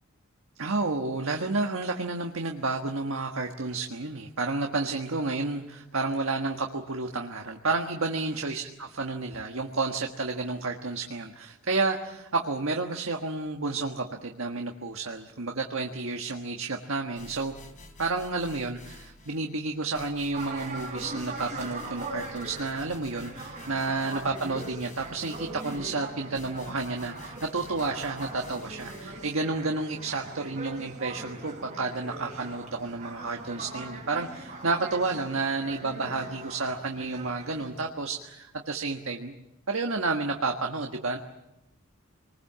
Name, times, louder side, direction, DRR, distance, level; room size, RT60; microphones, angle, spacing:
voice 1, 0.6-17.5 18.0-39.4 39.7-41.2, right 3 dB, 70° right, 3 dB, 1.5 m, -31 dB
sound 1, 17.2-19.5 19.9-29.4, left 3 dB, 40° left, 3.5 m, -50 dB
sound 2, 20.3-37.7, right 2 dB, 35° right, 6.9 m, -41 dB
26.5 x 20.5 x 7.5 m, 0.93 s
head